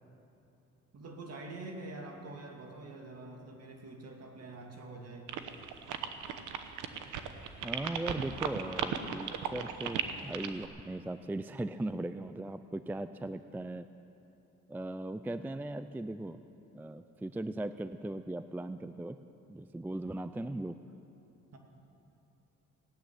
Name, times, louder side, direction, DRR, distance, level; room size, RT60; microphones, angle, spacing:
voice 1, 0.9-5.3 21.5-21.6, right 2 dB, 55° right, 2 dB, 2.4 m, -45 dB
sound 1, 5.3-10.7, right 9 dB, 85° right, 1.0 m, -36 dB
voice 2, 7.6-13.9 14.7-16.4 16.7-19.2 19.5-20.8, right 1 dB, 5° right, 12 dB, 0.4 m, -38 dB
17.0 x 8.7 x 9.6 m, 2.8 s
cardioid pair, 90°, 30 cm